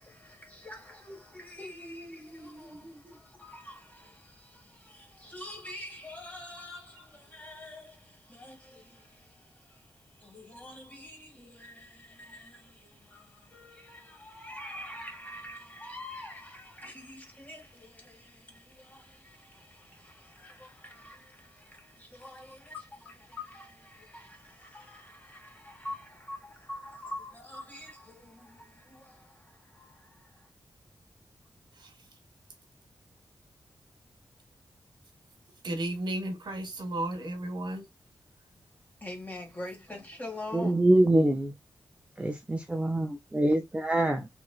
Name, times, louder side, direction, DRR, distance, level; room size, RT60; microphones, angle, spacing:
voice 1, 0.0-30.5 39.0-40.8, left 1 dB, 20° left, 2.0 m, -46 dB
voice 2, 1.7-3.2 31.7-32.2 35.6-37.9, right 1 dB, 70° right, 1.4 m, -36 dB
voice 3, 40.5-41.6 42.2-44.3, right 1 dB, 15° right, 0.5 m, -25 dB
4.1 x 3.1 x 2.3 m
wide cardioid pair, 85°, 8 cm